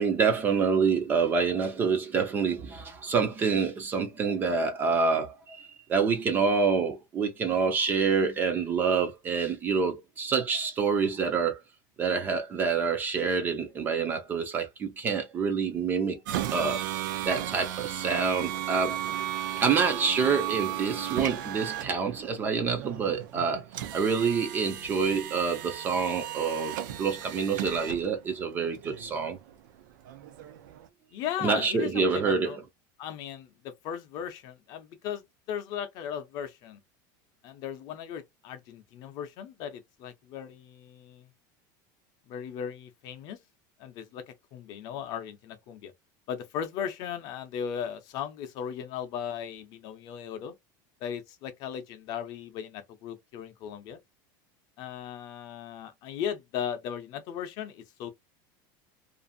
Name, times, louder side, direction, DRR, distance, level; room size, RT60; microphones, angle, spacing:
voice 1, 0.0-11.6 12.0-16.2 16.5-16.8 17.3-19.0 19.6-23.6 23.9-26.7 27.0-29.4 31.4-32.6, right 5 dB, 20° right, 0.4 m, -27 dB
sound 1, 16.3-30.9, right 12 dB, 75° right, 0.5 m, -35 dB
voice 2, 31.1-32.6 33.0-36.8 37.4-41.3 42.3-43.4 43.8-45.9 46.3-50.5 51.0-54.0 54.8-58.1, left 8 dB, 40° left, 0.5 m, -37 dB
2.5 x 2.4 x 2.5 m
supercardioid pair, 175°, 11 cm